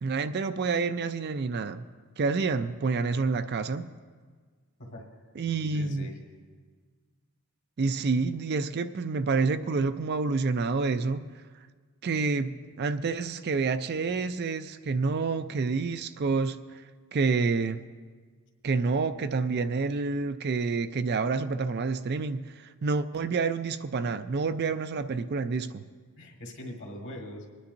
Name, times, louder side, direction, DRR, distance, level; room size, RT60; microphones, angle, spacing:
voice 1, 0.0-1.9 2.2-3.9 5.4-6.1 7.8-11.3 12.0-16.6 17.1-17.8 18.6-25.8, right 4 dB, 45° right, 10 dB, 0.4 m, -28 dB
voice 2, 4.8-5.3 5.7-6.2 26.2-27.5, left 1 dB, 55° left, 1 dB, 1.7 m, -42 dB
25.5 x 10.0 x 2.6 m, 1.6 s
head